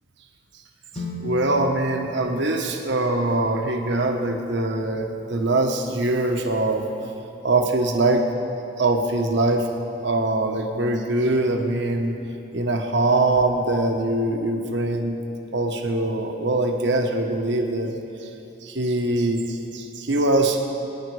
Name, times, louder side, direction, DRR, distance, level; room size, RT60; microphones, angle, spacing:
sound 1, 0.9-5.0, left 1 dB, 35° left, 1.2 m, -38 dB
voice 1, 1.2-6.8 7.4-8.3 8.8-9.7 10.0-12.1 12.5-15.2 15.5-17.9 18.2-18.3 18.6-20.9, right 2 dB, 70° right, 3 dB, 1.2 m, -23 dB
20.0 x 10.0 x 4.9 m, 2.8 s
head